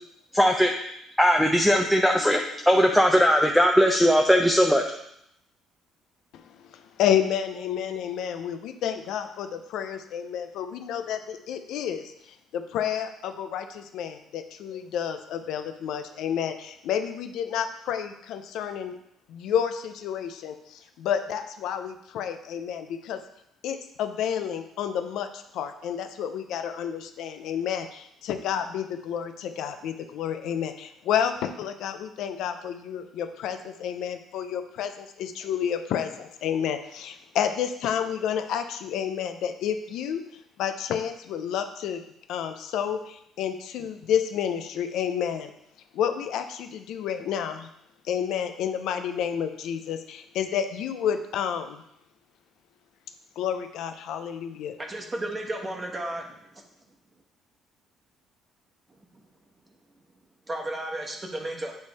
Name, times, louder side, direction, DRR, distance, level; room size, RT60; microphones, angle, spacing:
voice 1, 0.3-0.7 1.2-4.8, equal, ahead, 2 dB, 0.4 m, -19 dB
voice 2, 7.0-12.0 12.5-18.9 19.3-20.5 21.0-23.2 23.6-40.2 40.6-42.0 42.3-45.5 45.9-47.7 48.1-51.8 53.4-54.7, left 9 dB, 75° left, 8 dB, 0.5 m, -30 dB
voice 3, 54.8-56.6 59.1-59.2 60.5-61.7, right 1 dB, 20° right, 1 dB, 1.0 m, -33 dB
7.9 x 3.3 x 4.1 m, 0.77 s
cardioid pair, 125°, 0 cm